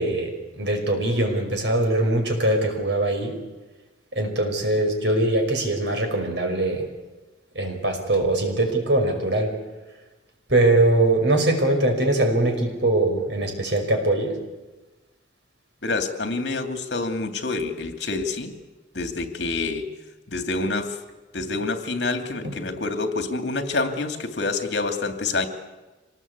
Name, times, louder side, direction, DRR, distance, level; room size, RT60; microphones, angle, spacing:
voice 1, 0.0-3.4 4.2-6.9 7.6-9.6 10.5-14.4 22.4-22.6, right 2 dB, 70° right, 3 dB, 5.6 m, -22 dB
voice 2, 15.8-18.5 18.9-19.9 20.3-21.0 21.3-25.5, left 3 dB, 70° left, 6 dB, 2.7 m, -27 dB
25.5 x 19.5 x 8.4 m, 1.2 s
head